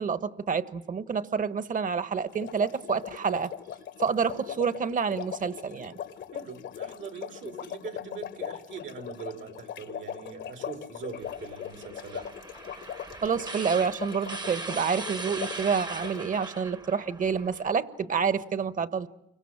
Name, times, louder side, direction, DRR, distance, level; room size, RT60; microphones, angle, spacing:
voice 1, 0.0-3.5 4.0-5.9 13.2-19.1, right 6 dB, 45° right, 13 dB, 1.3 m, -28 dB
sound 1, 2.3-16.2, left 9 dB, 70° left, 1.3 m, -40 dB
voice 2, 6.3-12.3, right 6 dB, 80° right, 5 dB, 3.3 m, -42 dB
sound 2, 11.2-17.7, right 3 dB, 20° right, 0.9 m, -40 dB
29.5 x 24.5 x 7.4 m, 0.83 s
cardioid pair, 90°, 19 cm